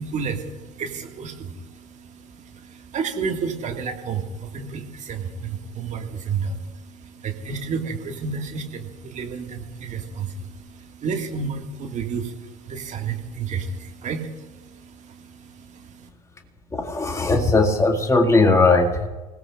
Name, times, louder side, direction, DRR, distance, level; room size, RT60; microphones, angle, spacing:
voice 1, 0.0-16.1, right 5 dB, 40° right, 4 dB, 2.0 m, -31 dB
voice 2, 16.7-19.1, left 3 dB, 15° left, 3 dB, 2.1 m, -18 dB
27.5 x 17.5 x 2.5 m, 1.2 s
figure-of-eight pair, 65°, 19 cm